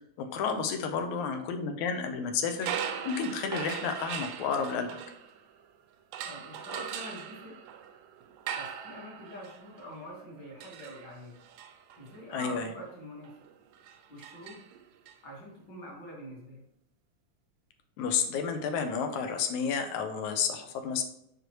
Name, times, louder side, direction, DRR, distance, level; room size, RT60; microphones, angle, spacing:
voice 1, 0.2-2.7 3.1-4.9 12.3-12.7 18.0-21.0, left 6 dB, 85° left, 6 dB, 2.1 m, -31 dB
sound 1, 2.6-5.7 6.1-15.1, right 8 dB, 85° right, 1.9 m, -40 dB
voice 2, 6.2-7.6 8.6-11.4 12.0-13.3 14.1-14.6 15.2-16.6, equal, 45° left, -3 dB, 1.8 m, -45 dB
6.2 x 5.0 x 3.0 m, 0.76 s
omnidirectional pair, 3.4 m